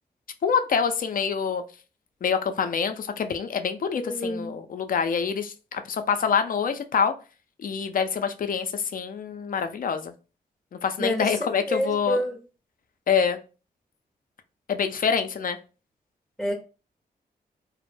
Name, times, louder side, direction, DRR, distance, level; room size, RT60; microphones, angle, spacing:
voice 1, 0.4-1.6 2.2-7.1 7.6-10.1 10.8-12.2 13.1-13.4 14.7-15.6, left 6 dB, 55° left, 8 dB, 0.4 m, -26 dB
voice 2, 3.9-4.5 11.0-11.3 11.7-12.4 16.4-16.5, equal, ahead, 1 dB, 0.6 m, -28 dB
2.1 x 2.0 x 3.1 m, 0.34 s
supercardioid pair, 40°, 17 cm